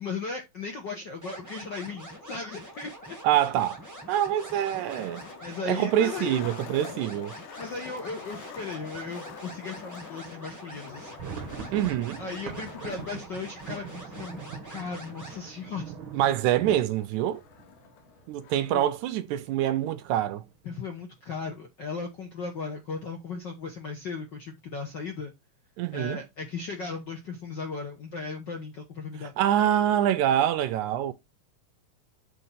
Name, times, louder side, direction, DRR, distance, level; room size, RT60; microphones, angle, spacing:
voice 1, 0.0-3.2 5.4-6.4 7.6-11.2 11.5-11.7 12.2-14.4 14.7-15.9 18.7-18.8 20.6-25.3 25.9-29.3, left 4 dB, 55° left, 1.2 m, -36 dB
sound 1, 1.2-15.4, right 1 dB, 20° right, 0.4 m, -45 dB
Skateboard, 1.9-18.9, left 6 dB, 85° left, 2.5 m, -48 dB
voice 2, 3.2-3.8 4.1-5.2 5.7-7.4 11.7-12.2 16.1-17.4 18.3-20.4 25.8-26.2 29.4-31.1, right 11 dB, 80° right, 1.9 m, -25 dB
sound 2, 10.9-18.6 18.9-19.0 19.3-19.5 20.0-20.5, right 6 dB, 60° right, 1.3 m, -42 dB
6.8 x 3.3 x 5.6 m
omnidirectional pair, 3.6 m